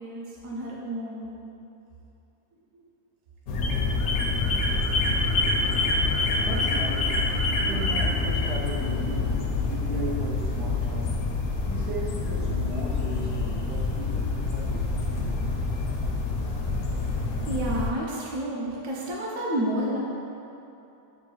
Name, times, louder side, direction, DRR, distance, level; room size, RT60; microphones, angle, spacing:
voice 1, 0.0-1.3 17.4-20.0, right 1 dB, 60° right, -3 dB, 0.9 m, -30 dB
sound 1, 3.5-17.9, left 3 dB, 70° left, 0.9 m, -26 dB
voice 2, 6.4-7.3 7.6-11.3 11.7-15.5, right 2 dB, 85° right, -2 dB, 1.2 m, -37 dB
6.7 x 2.3 x 3.1 m, 2.8 s
omnidirectional pair, 1.7 m